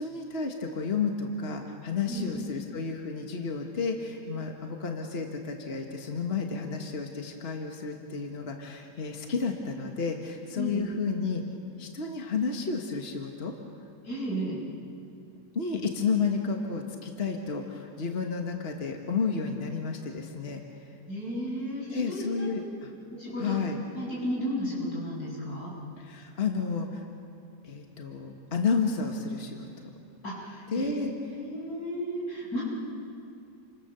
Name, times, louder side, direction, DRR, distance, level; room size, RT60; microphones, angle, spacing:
voice 1, 0.0-11.4 11.8-13.5 15.5-20.6 21.9-22.9 23.4-23.8 26.0-27.0 27.6-29.9 30.7-31.1, left 5 dB, 40° left, 2 dB, 1.8 m, -31 dB
voice 2, 10.5-10.9 14.0-14.6 21.1-22.5 23.1-23.6 23.9-25.7 30.2-30.9 31.3-32.6, equal, 85° left, -5 dB, 8.0 m, -33 dB
29.5 x 24.5 x 7.0 m, 2.5 s
omnidirectional pair, 1.6 m